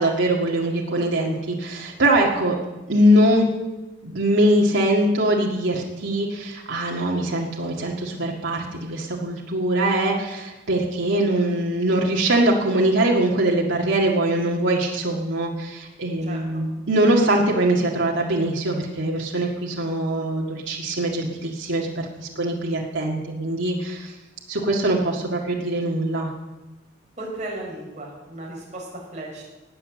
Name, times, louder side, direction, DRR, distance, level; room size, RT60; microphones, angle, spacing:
voice 1, 0.0-2.6 2.9-3.5 4.0-24.1 24.5-26.3, right 1 dB, 80° right, -3 dB, 1.9 m, -22 dB
voice 2, 16.3-16.6 27.2-29.4, right 1 dB, 40° right, -2 dB, 4.8 m, -35 dB
19.0 x 6.8 x 7.5 m, 1.1 s
head